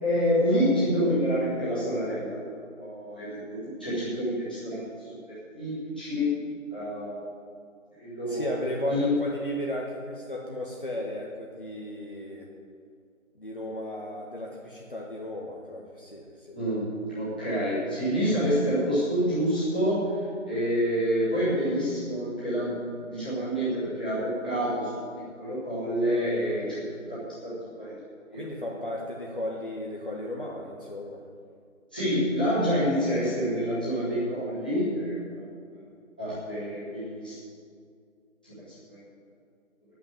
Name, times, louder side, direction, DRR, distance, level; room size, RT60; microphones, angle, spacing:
voice 1, 0.0-6.3 6.7-7.2 8.0-8.5 8.9-9.1 16.5-20.1 20.5-24.9 25.4-26.8 27.8-27.9 28.3-28.5 31.9-35.4 36.2-37.4 38.4-38.5 38.9-39.0, equal, 5° left, -13 dB, 1.8 m, -27 dB
voice 2, 8.3-12.5 13.4-16.6 28.3-31.2, left 1 dB, 40° left, -2 dB, 1.4 m, -35 dB
10.0 x 8.8 x 8.7 m, 2.2 s
figure-of-eight pair, 180°, 40 cm